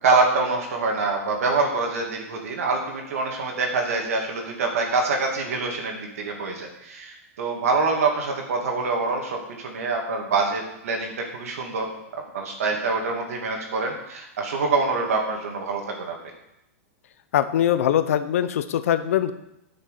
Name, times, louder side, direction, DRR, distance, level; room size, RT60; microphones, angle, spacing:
voice 1, 0.0-11.8 12.1-16.2, right 3 dB, 75° right, 1 dB, 2.5 m, -25 dB
voice 2, 17.3-19.3, left 10 dB, 70° left, 12 dB, 0.9 m, -22 dB
9.4 x 6.6 x 6.6 m, 0.83 s
hypercardioid pair, 150°, 8 cm